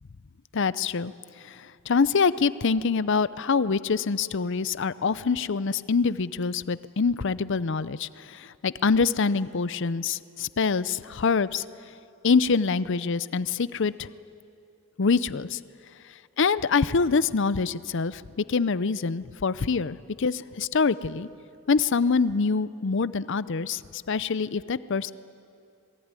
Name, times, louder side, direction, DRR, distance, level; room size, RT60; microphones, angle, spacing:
voice 1, 0.5-1.1 1.4-11.6 12.2-14.1 15.0-15.6 16.4-18.2 18.5-21.3 21.7-25.1, left 5 dB, 60° left, 16 dB, 0.6 m, -25 dB
27.0 x 21.0 x 9.8 m, 2.6 s
head